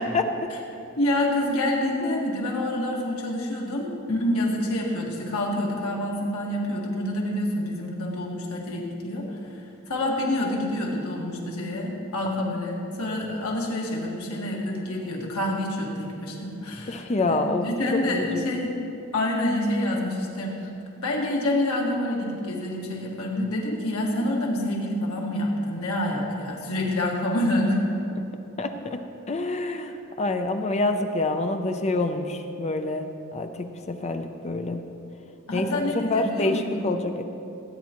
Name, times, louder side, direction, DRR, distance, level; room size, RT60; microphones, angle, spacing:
voice 1, 1.0-18.7 19.1-20.6 21.0-27.8 35.5-36.9, left 1 dB, 65° left, -2 dB, 1.7 m, -27 dB
voice 2, 16.9-17.7 18.1-18.5 28.6-29.0 29.3-29.9 30.2-34.8 35.5-35.8 36.1-37.2, left 2 dB, 30° left, 6 dB, 0.5 m, -27 dB
17.0 x 9.3 x 3.0 m, 2.7 s
head